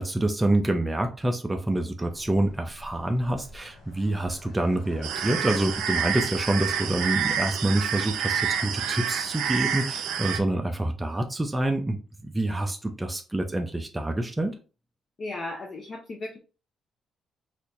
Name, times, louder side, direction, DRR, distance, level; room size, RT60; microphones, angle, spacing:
voice 1, 0.0-12.0 12.2-14.5, right 1 dB, 15° right, 4 dB, 0.5 m, -27 dB
sound 1, 2.0-7.2, left 2 dB, 75° left, 1.6 m, -47 dB
sound 2, 5.0-10.4, right 8 dB, 85° right, 0.4 m, -28 dB
voice 2, 15.2-16.4, left 2 dB, 45° left, -1 dB, 0.7 m, -35 dB
4.3 x 2.6 x 2.5 m, 0.34 s
cardioid pair, 90°, 0 cm